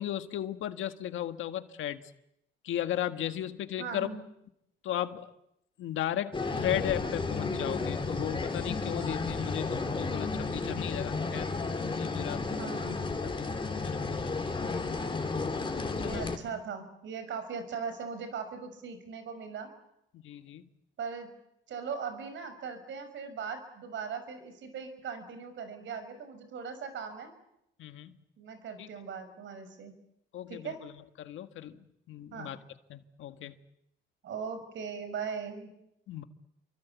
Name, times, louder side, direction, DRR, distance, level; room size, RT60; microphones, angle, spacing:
voice 1, 0.0-2.0 2.6-4.2 4.8-5.3 5.8-11.5 12.0-12.7 13.4-13.5 13.8-14.3 15.9-16.2 20.2-20.6 27.8-28.1 28.8-28.9 30.3-30.9 31.2-31.8 32.1-32.6 32.9-33.5 36.1-36.2, left 11 dB, 80° left, 9 dB, 1.7 m, -35 dB
voice 2, 3.8-4.2 12.5-13.1 15.9-19.7 21.0-21.3 21.7-27.3 28.4-29.9 30.5-30.8 32.3-32.6 34.2-35.7, right 6 dB, 70° right, 10 dB, 6.0 m, -39 dB
sound 1, 6.3-16.4, left 3 dB, 25° left, 3.7 m, -33 dB
28.5 x 24.0 x 8.3 m, 0.81 s
cardioid pair, 90°, 20 cm